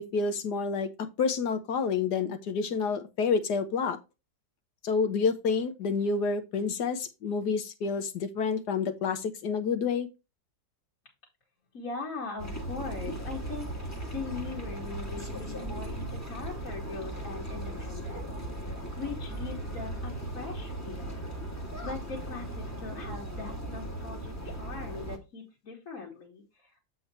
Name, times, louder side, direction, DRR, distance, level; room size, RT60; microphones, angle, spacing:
voice 1, 0.0-4.0 4.8-10.1, left 5 dB, 65° left, 1.5 m, -29 dB
voice 2, 11.7-18.3 19.0-21.2 21.8-26.8, left 4 dB, 50° left, 2.4 m, -41 dB
sound 1, 12.4-25.2, right 1 dB, 10° left, 1.4 m, -37 dB
7.8 x 4.3 x 4.4 m
omnidirectional pair, 2.0 m